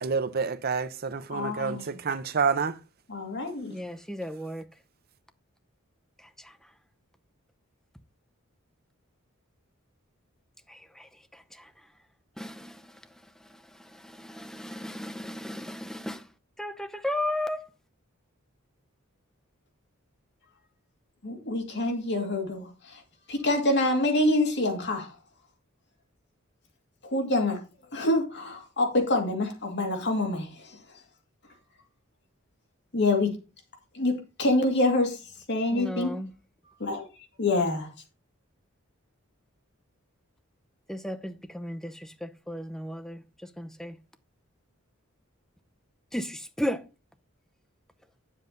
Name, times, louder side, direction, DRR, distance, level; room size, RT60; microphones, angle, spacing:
voice 1, 0.0-2.8, right 5 dB, 45° right, 0.7 m, -28 dB
voice 2, 1.3-2.0 3.1-3.7 21.2-23.0 23.3-25.2 27.0-27.6 27.9-31.0 32.9-33.3 33.9-36.1 36.8-37.1 37.4-37.9, left 2 dB, 55° left, 2.4 m, -26 dB
voice 3, 3.7-4.7 6.2-6.7 10.7-11.7 12.4-16.3 16.6-17.7 35.7-36.3 40.9-44.0 46.1-46.8, left 1 dB, ahead, 0.7 m, -35 dB
9.1 x 7.5 x 3.9 m
head